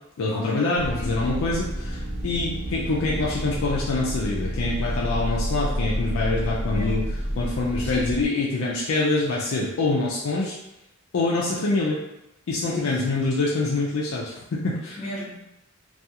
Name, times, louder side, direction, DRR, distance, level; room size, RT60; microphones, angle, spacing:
voice 1, 0.2-7.0 7.4-10.5 11.1-12.0 12.5-15.0, left 3 dB, 70° left, -4 dB, 0.4 m, -25 dB
sound 1, 0.8-8.3, equal, 35° right, 1.2 m, -29 dB
voice 2, 1.0-1.6 6.7-6.9 7.8-8.1 12.6-12.9 15.0-15.4, left 1 dB, 35° left, -8 dB, 1.0 m, -34 dB
2.3 x 2.3 x 2.7 m, 0.91 s
head